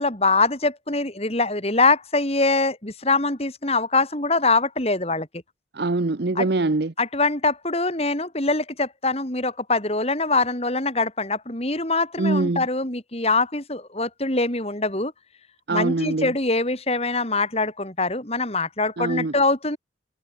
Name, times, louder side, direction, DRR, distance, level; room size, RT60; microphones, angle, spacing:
voice 1, 0.0-5.3 6.4-6.5 7.0-15.1 15.7-19.8, left 3 dB, 30° left, 3.6 m, -23 dB
voice 2, 5.7-6.9 12.2-12.7 15.7-16.3 19.0-19.3, right 2 dB, 60° right, 0.8 m, -23 dB
head